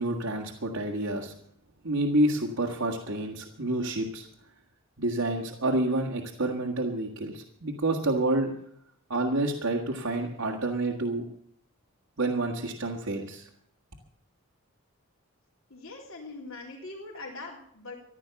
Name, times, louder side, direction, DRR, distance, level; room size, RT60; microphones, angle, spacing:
voice 1, 0.0-1.3 1.8-4.3 5.0-8.5 9.1-11.2 12.2-13.5, right 2 dB, 75° right, 0 dB, 1.9 m, -28 dB
voice 2, 15.7-18.0, left 3 dB, 70° left, -3 dB, 3.4 m, -42 dB
15.5 x 11.5 x 7.1 m, 0.68 s
head